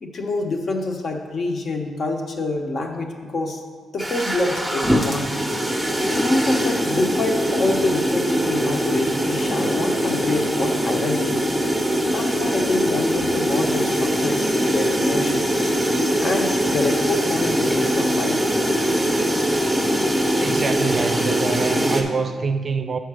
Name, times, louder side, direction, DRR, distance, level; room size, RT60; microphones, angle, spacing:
voice 1, 0.0-3.6 3.9-5.4 6.0-11.4 12.1-15.6 16.2-18.5, left 2 dB, 50° left, 0.9 m, -26 dB
sound 1, 4.0-22.0, equal, 5° right, 0.7 m, -22 dB
voice 2, 20.4-23.0, right 4 dB, 40° right, 0.4 m, -25 dB
6.5 x 5.7 x 4.8 m
cardioid pair, 130°, 0 cm